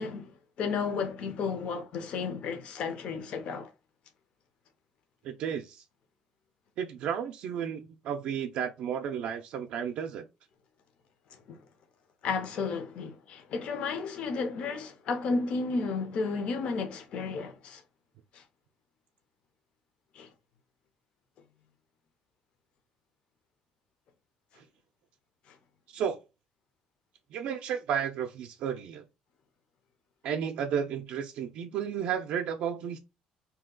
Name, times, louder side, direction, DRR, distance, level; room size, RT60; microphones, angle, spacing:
voice 1, 0.0-3.7 11.3-11.6 12.2-17.8 18.3-18.4 20.1-20.3 25.5-25.6, left 4 dB, 50° left, 0.5 m, -33 dB
voice 2, 5.2-5.8 6.8-10.2 25.9-26.2 27.3-29.0 30.2-33.0, right 8 dB, 60° right, 0.4 m, -33 dB
2.7 x 2.2 x 3.6 m
cardioid pair, 170°, 2 cm